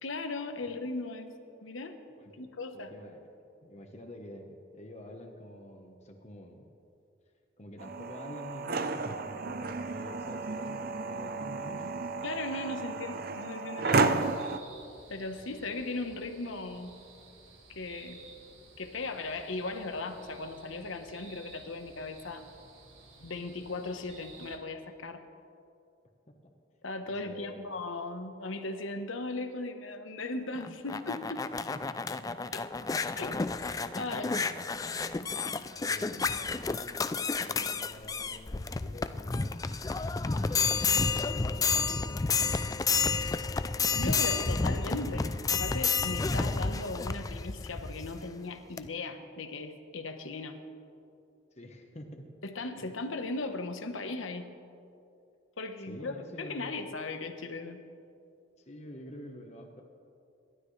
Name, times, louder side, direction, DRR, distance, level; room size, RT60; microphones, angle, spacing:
voice 1, 0.0-1.3 1.6-2.0 2.4-2.9 12.2-14.2 15.1-16.9 17.7-18.2 18.8-22.5 23.2-25.2 26.8-31.5 32.5-32.7 33.1-33.4 34.0-34.4 43.9-50.6 52.4-54.5 55.6-57.8, left 2 dB, 80° left, 7 dB, 1.2 m, -37 dB
voice 2, 2.2-2.5 2.7-3.2 3.6-6.7 7.6-12.1 12.7-13.0 15.5-15.8 27.0-27.7 31.9-32.3 32.8-33.0 33.9-35.2 35.5-39.4 39.9-43.6 44.2-44.8 51.5-52.3 55.9-56.8 58.6-59.8, equal, 35° left, 2 dB, 1.2 m, -48 dB
sound 1, 7.8-14.6, right 3 dB, 50° right, 0.6 m, -32 dB
sound 2, 14.2-24.6, right 3 dB, 85° right, 1.9 m, -54 dB
sound 3, 30.6-48.2 48.8-48.9, left 4 dB, 20° left, 0.3 m, -30 dB
27.0 x 12.5 x 3.3 m, 2.6 s
head